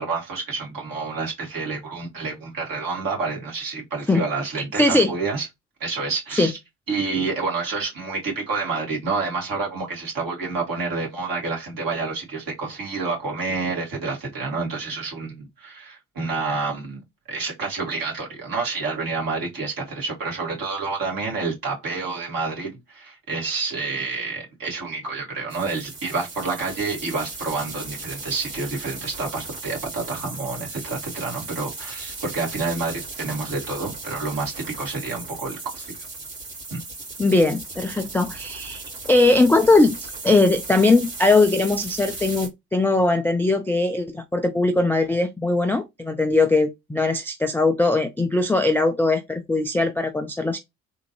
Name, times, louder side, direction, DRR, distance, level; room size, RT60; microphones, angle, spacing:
voice 1, 0.0-5.5 5.8-6.5 6.9-17.0 17.3-35.9 36.7-36.8, right 4 dB, 45° right, 2.2 m, -28 dB
voice 2, 4.8-5.1 6.4-6.5 37.2-38.8 39.1-39.9 40.2-50.6, left 2 dB, 5° left, 0.3 m, -20 dB
sound 1, 25.5-42.5, right 3 dB, 75° right, 2.5 m, -37 dB
3.6 x 2.8 x 3.0 m
figure-of-eight pair, 50°, 46 cm